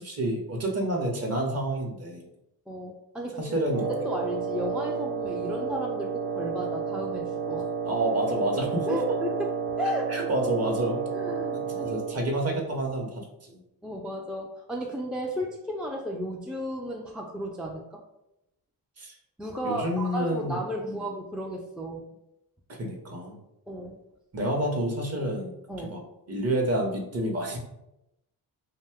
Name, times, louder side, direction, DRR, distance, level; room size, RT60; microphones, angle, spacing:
voice 1, 0.0-2.2 3.4-3.9 7.8-8.9 10.1-11.0 11.5-13.6 19.0-19.1 19.6-21.0 22.7-23.4 24.3-25.5 25.9-26.0 26.3-27.6, right 1 dB, 40° right, 2 dB, 0.8 m, -29 dB
voice 2, 2.7-3.5 3.8-7.7 8.9-9.5 9.8-10.1 11.1-12.3 13.8-18.0 19.4-22.0 23.7-24.0 25.2-25.3 25.7-26.0, equal, ahead, 0 dB, 0.3 m, -34 dB
Wind instrument woodwind instrument, 3.7-12.3, right 5 dB, 65° right, 0.6 m, -31 dB
2.6 x 2.2 x 3.5 m, 0.88 s
cardioid pair, 65°, 40 cm